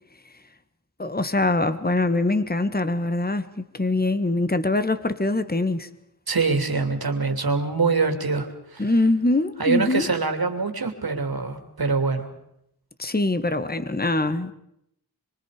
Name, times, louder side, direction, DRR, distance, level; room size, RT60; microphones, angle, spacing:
voice 1, 1.0-5.9 8.8-10.1 13.0-14.5, left 2 dB, 25° left, 1.5 m, -23 dB
voice 2, 6.3-8.9 9.6-12.3, right 4 dB, 70° right, 3.1 m, -24 dB
25.5 x 24.5 x 5.1 m
wide cardioid pair, 50°, 38 cm